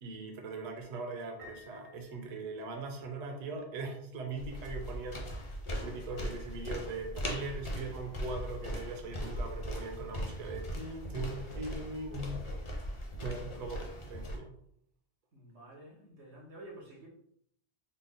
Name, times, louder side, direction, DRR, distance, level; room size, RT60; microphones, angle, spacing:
voice 1, 0.0-5.3 5.6-12.4 13.2-14.6, right 3 dB, 50° right, 3 dB, 0.6 m, -40 dB
Piano, 1.4-3.2, left 2 dB, 70° right, 1.6 m, -55 dB
sound 1, 4.4-14.4, equal, 40° left, 0.5 m, -39 dB
voice 2, 15.3-17.1, right 1 dB, 90° right, -3 dB, 1.3 m, -50 dB
3.9 x 2.0 x 3.6 m, 0.70 s
omnidirectional pair, 1.1 m